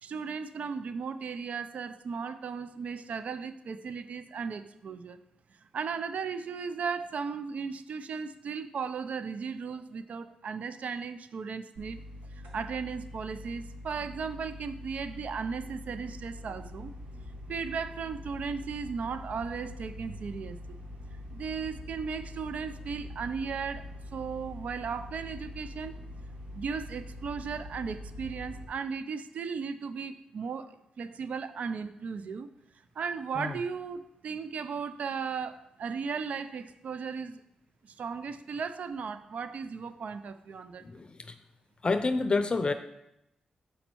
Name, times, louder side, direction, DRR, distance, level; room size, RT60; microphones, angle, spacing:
voice 1, 0.0-5.2 5.7-12.0 12.5-16.9 17.5-20.8 21.3-26.0 26.5-32.5 33.0-37.4 37.8-40.8, right 5 dB, 70° right, 11 dB, 0.4 m, -36 dB
sound 1, 11.7-28.6, left 1 dB, 85° right, 1.3 m, -44 dB
voice 2, 40.8-41.3 41.8-42.7, left 3 dB, 40° left, 9 dB, 0.5 m, -28 dB
7.0 x 5.2 x 4.5 m, 0.85 s
cardioid pair, 55°, 3 cm